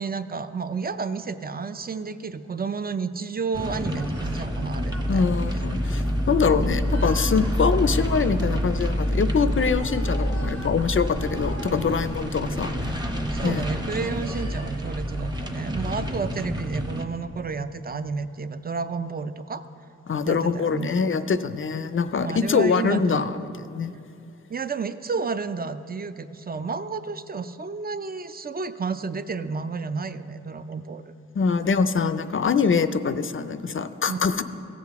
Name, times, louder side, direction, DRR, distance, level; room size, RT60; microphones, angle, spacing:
voice 1, 0.0-5.2 13.3-19.6 20.2-20.9 22.2-23.2 24.5-31.1 34.1-34.2, right 4 dB, 35° right, 11 dB, 0.4 m, -31 dB
sound 1, 3.5-17.0, equal, 15° right, 0.8 m, -27 dB
sound 2, 3.7-15.3, right 1 dB, 75° right, 1.5 m, -40 dB
voice 2, 5.1-12.9 13.4-13.7 20.1-23.9 31.3-34.4, left 5 dB, 45° left, 12 dB, 0.4 m, -24 dB
16.0 x 7.6 x 3.5 m, 2.6 s
wide cardioid pair, 80°, 29 cm